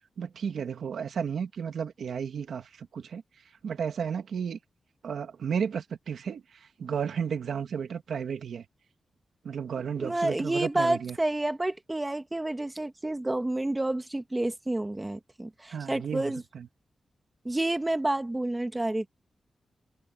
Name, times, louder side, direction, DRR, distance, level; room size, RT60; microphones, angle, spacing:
voice 1, 0.2-3.2 3.6-4.6 5.0-8.7 9.4-11.2 15.7-16.7, right 7 dB, 80° right, 1.9 m, -33 dB
voice 2, 10.0-16.4 17.4-19.1, right 1 dB, 20° right, 1.8 m, -29 dB
cardioid pair, 75°, 0 cm